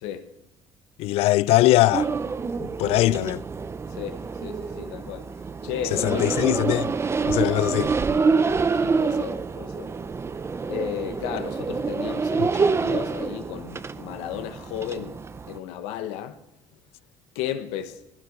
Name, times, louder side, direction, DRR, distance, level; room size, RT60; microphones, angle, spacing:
voice 1, 1.0-2.1 2.8-3.4 5.8-6.9 7.2-7.9 12.4-12.5, left 17 dB, 70° left, 0.4 m, -21 dB
sound 1, 1.9-15.6, right 4 dB, 25° right, 0.6 m, -27 dB
voice 2, 4.0-5.2 5.6-6.3 8.8-9.9 10.7-15.1 15.5-16.3 17.3-17.9, left 10 dB, 90° left, 1.0 m, -34 dB
15.5 x 9.8 x 5.3 m
supercardioid pair, 85°, 10 cm